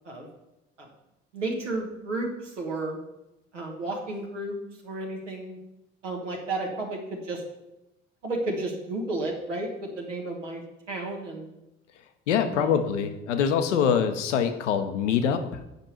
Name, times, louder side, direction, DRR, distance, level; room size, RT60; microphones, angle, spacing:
voice 1, 1.3-3.0 3.5-4.6 4.8-5.6 6.0-7.4 8.2-9.7 10.0-10.6 10.9-11.5 12.5-12.8, right 2 dB, 90° right, -1 dB, 1.3 m, -32 dB
voice 2, 12.3-15.5, left 7 dB, 85° left, 8 dB, 0.7 m, -24 dB
8.1 x 5.3 x 4.4 m, 0.92 s
hypercardioid pair, 50°, 35 cm